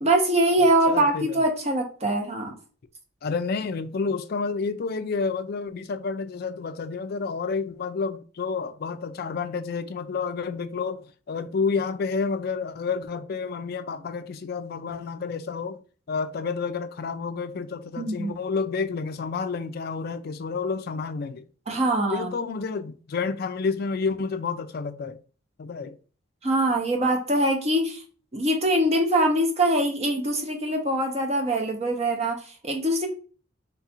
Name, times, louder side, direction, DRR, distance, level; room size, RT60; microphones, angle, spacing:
voice 1, 0.0-2.5 18.0-18.3 21.7-22.3 26.4-28.0 28.3-33.1, right 1 dB, 35° right, 0.8 m, -23 dB
voice 2, 0.9-1.4 3.2-11.0 11.3-15.8 16.1-21.4 22.1-25.2 25.6-26.0, left 5 dB, 50° left, 0.4 m, -30 dB
3.3 x 2.5 x 4.3 m
head